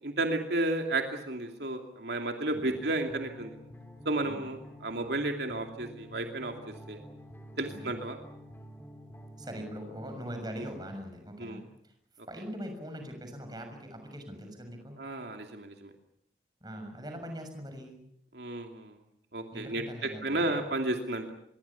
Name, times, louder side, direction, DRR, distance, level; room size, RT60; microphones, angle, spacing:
voice 1, 0.0-3.5 4.0-6.5 6.9-7.0 7.6-8.2 10.6-10.7 11.4-11.6 15.0-15.9 18.3-19.0 19.3-21.3, right 2 dB, 70° right, 4 dB, 2.6 m, -32 dB
sound 1, 2.6-11.0, equal, 10° left, 3.1 m, -49 dB
voice 2, 9.4-11.9 12.3-15.0 16.6-18.0 19.5-20.6, equal, 20° right, 5 dB, 6.5 m, -42 dB
26.5 x 22.5 x 7.1 m, 0.70 s
head